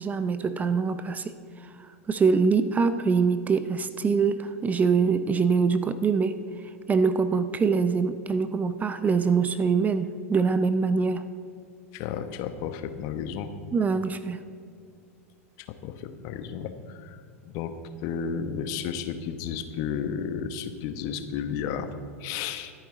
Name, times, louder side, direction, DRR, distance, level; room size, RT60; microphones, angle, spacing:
voice 1, 0.0-1.3 2.1-6.4 6.9-11.2 13.7-14.4, right 5 dB, 20° right, 12 dB, 0.6 m, -24 dB
voice 2, 11.9-13.5 15.7-17.7 18.0-22.7, left 7 dB, 50° left, 9 dB, 1.2 m, -33 dB
25.5 x 9.2 x 3.9 m, 2.2 s
figure-of-eight pair, 90°, 8 cm